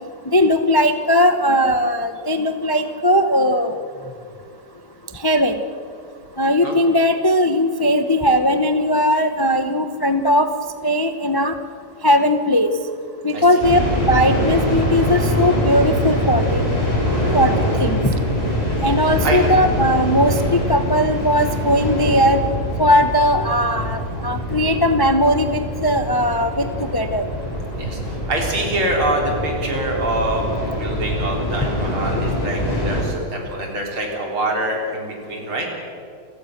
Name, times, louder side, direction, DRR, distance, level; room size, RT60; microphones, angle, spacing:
voice 1, 0.3-3.7 5.2-5.5 6.4-10.5 10.8-11.5 12.0-12.7 13.2-13.8 14.1-16.6 17.3-18.1 18.8-22.4 22.8-26.7 26.9-27.2, equal, 35° left, 8 dB, 0.3 m, -18 dB
sound 1, 13.6-33.0, equal, 20° left, 5.1 m, -23 dB
voice 2, 27.7-35.7, right 1 dB, 90° right, 0 dB, 5.0 m, -25 dB
29.5 x 16.5 x 6.7 m, 2.3 s
omnidirectional pair, 2.3 m